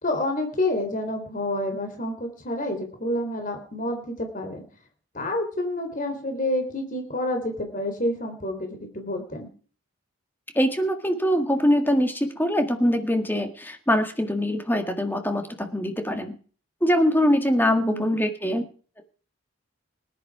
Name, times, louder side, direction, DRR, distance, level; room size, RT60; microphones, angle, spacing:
voice 1, 0.0-4.6 5.1-9.5 17.8-18.2, left 1 dB, 40° left, 4 dB, 3.7 m, -28 dB
voice 2, 10.6-16.4 16.8-18.6, equal, 10° left, 6 dB, 1.7 m, -23 dB
19.5 x 10.5 x 4.8 m, 0.42 s
head